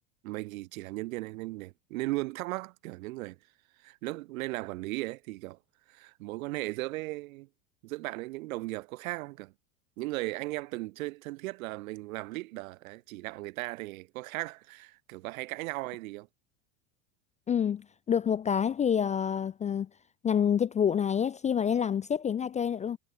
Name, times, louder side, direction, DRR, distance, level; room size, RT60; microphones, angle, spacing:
voice 1, 0.2-3.4 3.8-5.6 5.9-7.5 7.8-9.5 10.0-16.3, right 21 dB, 70° right, 1.5 m, -37 dB
voice 2, 17.5-19.9 20.2-23.0, left 8 dB, 15° left, 0.4 m, -27 dB
hypercardioid pair, 100°, 42 cm